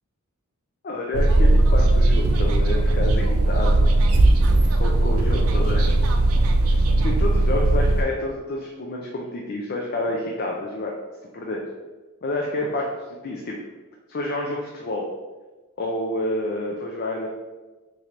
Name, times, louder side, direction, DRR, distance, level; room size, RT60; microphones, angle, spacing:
voice 1, 0.8-3.9 4.8-5.9 6.7-10.9 11.3-11.6 12.2-13.6 14.1-15.1 15.8-17.3, left 2 dB, 45° left, -1 dB, 0.4 m, -29 dB
sound 1, 1.1-8.0, right 2 dB, 80° right, 0.4 m, -18 dB
3.1 x 2.5 x 4.3 m, 1.2 s
head